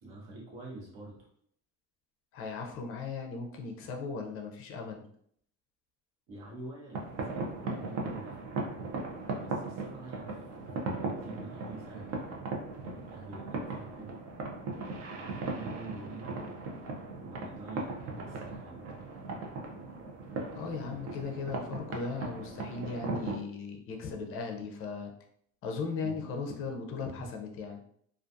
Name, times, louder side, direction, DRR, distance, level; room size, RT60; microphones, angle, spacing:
voice 1, 0.0-1.3 6.3-7.1 7.6-8.8 9.4-10.4 11.0-12.4 13.0-14.1 15.1-16.3 17.2-18.8 26.0-26.3, right 2 dB, 65° right, -3 dB, 1.1 m, -46 dB
voice 2, 2.3-5.0 20.5-25.1 25.6-27.8, left 4 dB, 40° left, 3 dB, 0.5 m, -37 dB
sound 1, 6.9-23.4, right 3 dB, 45° right, 0.5 m, -38 dB
2.4 x 2.3 x 2.6 m, 0.66 s
cardioid pair, 145°, 34 cm